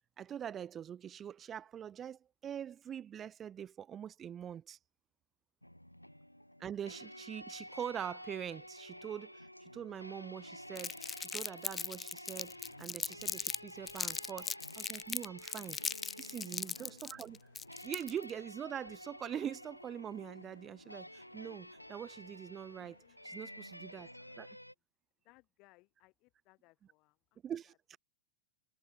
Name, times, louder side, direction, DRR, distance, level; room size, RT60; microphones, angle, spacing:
voice 1, 0.2-4.8 6.6-15.8 16.2-17.4 17.8-23.0 23.2-24.1 24.4-24.6 27.4-28.0, right 9 dB, 25° right, 3.5 m, -44 dB
sound 1, 5.6-24.7, equal, 90° left, 3.3 m, -51 dB
Crumpling crinkling, 10.8-13.6 13.9-18.3, left 6 dB, 20° left, 0.3 m, -39 dB
sound 2, 12.3-24.4, left 14 dB, 55° left, 6.0 m, -68 dB
voice 2, 16.6-16.9 25.2-27.4, left 24 dB, 40° left, 5.6 m, -66 dB
figure-of-eight pair, 90°, 0 cm